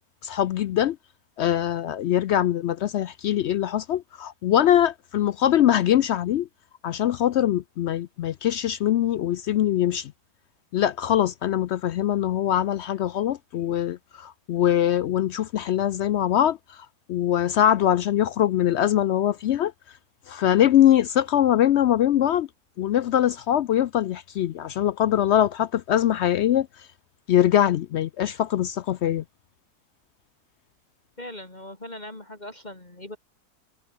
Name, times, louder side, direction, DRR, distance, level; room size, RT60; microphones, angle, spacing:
voice 1, 0.2-1.0 1.4-6.5 6.8-10.1 10.7-19.7 20.3-22.5 22.8-26.7 27.3-29.2, left 11 dB, 75° left, 0.6 m, -22 dB
voice 2, 31.2-33.2, left 1 dB, 25° left, 2.6 m, -40 dB
omnidirectional pair, 1.7 m